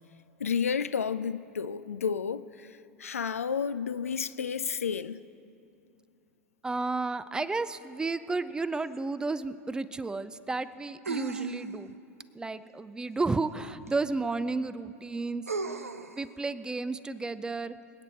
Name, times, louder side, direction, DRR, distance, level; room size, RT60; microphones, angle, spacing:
voice 1, 0.4-2.7 3.0-5.2, left 6 dB, 75° left, 0.4 m, -31 dB
voice 2, 6.6-11.9 12.3-15.5 16.1-17.8, right 3 dB, 10° right, 0.5 m, -32 dB
sound 1, 8.9-9.0 11.1-12.0 13.9-14.0 15.5-16.2, right 4 dB, 80° right, 0.6 m, -35 dB
26.5 x 9.0 x 4.4 m
figure-of-eight pair, 85°, 8 cm